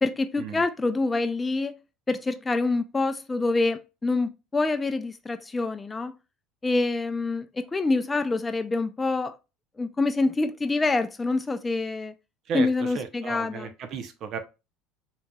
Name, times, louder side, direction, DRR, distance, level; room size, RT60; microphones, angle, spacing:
voice 1, 0.0-1.7 2.1-6.1 6.6-9.4 9.8-12.1 12.5-13.7, left 3 dB, 20° left, 0.4 m, -26 dB
voice 2, 12.9-14.4, right 6 dB, 50° right, 0.8 m, -33 dB
4.4 x 3.0 x 2.3 m
hypercardioid pair, 80°, 0 cm